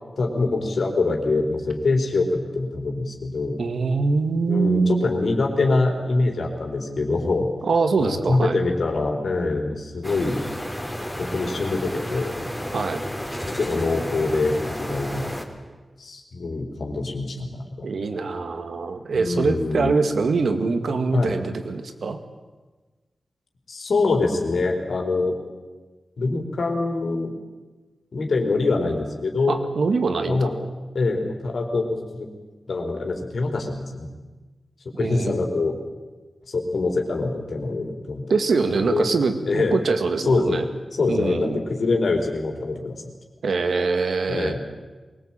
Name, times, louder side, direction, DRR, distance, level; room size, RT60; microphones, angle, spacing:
voice 1, 0.2-3.6 4.5-7.5 8.0-10.4 11.2-12.3 13.4-15.3 16.0-17.9 19.1-20.0 21.1-21.3 23.7-25.3 26.2-27.3 28.1-29.6 30.2-30.6 30.9-32.3 32.7-34.1 35.0-35.7 36.5-38.3 38.9-39.0 39.4-39.8 40.2-40.6 40.9-43.0 44.3-44.7, left 3 dB, 75° left, 3 dB, 4.0 m, -24 dB
voice 2, 3.6-5.1 7.7-8.6 12.7-13.0 17.8-22.2 29.5-30.5 34.9-35.3 38.3-40.6 41.1-41.6 43.4-44.6, right 4 dB, 85° right, 8 dB, 2.0 m, -23 dB
sound 1, 10.0-15.5, equal, 5° left, 3.2 m, -31 dB
23.0 x 19.0 x 9.0 m, 1.3 s
wide cardioid pair, 80°, 0 cm